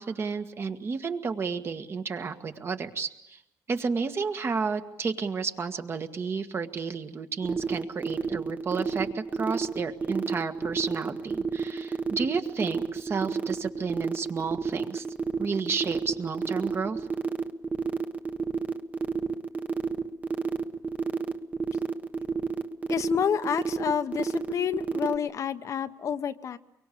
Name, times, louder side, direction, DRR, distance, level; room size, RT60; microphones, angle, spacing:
voice 1, 0.0-3.4 3.7-15.0 15.4-17.1, right 5 dB, 40° right, 8 dB, 1.8 m, -32 dB
sound 1, 7.4-25.1, right 5 dB, 25° right, 1.2 m, -30 dB
voice 2, 22.9-26.6, left 8 dB, 55° left, 10 dB, 0.9 m, -29 dB
24.5 x 23.5 x 8.5 m, 0.82 s
cardioid pair, 115°, 7 cm